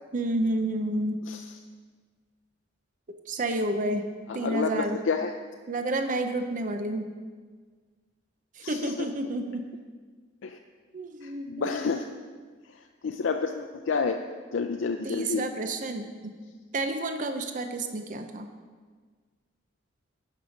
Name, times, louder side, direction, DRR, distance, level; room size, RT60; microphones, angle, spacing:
voice 1, 0.1-1.2 3.3-5.0 5.7-7.1 8.6-9.7 10.9-11.8 15.0-16.3 16.7-18.5, right 2 dB, 40° right, 7 dB, 0.6 m, -30 dB
voice 2, 4.4-5.3 8.6-9.1 10.4-10.6 11.2-12.1 13.0-14.2 14.5-15.5, left 5 dB, 70° left, 4 dB, 0.4 m, -29 dB
11.0 x 5.5 x 5.0 m, 1.5 s
head